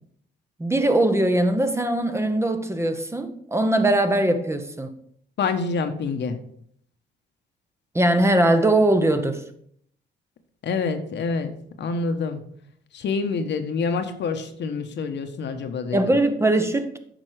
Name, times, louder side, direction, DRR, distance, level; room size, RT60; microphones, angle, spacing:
voice 1, 0.6-4.9 7.9-9.4 15.9-16.9, right 1 dB, 15° right, 0.9 m, -21 dB
voice 2, 5.4-6.4 10.6-11.5 11.8-12.4 12.9-16.2, left 4 dB, 65° left, 1.1 m, -27 dB
9.0 x 5.4 x 4.9 m
cardioid pair, 90°, 20 cm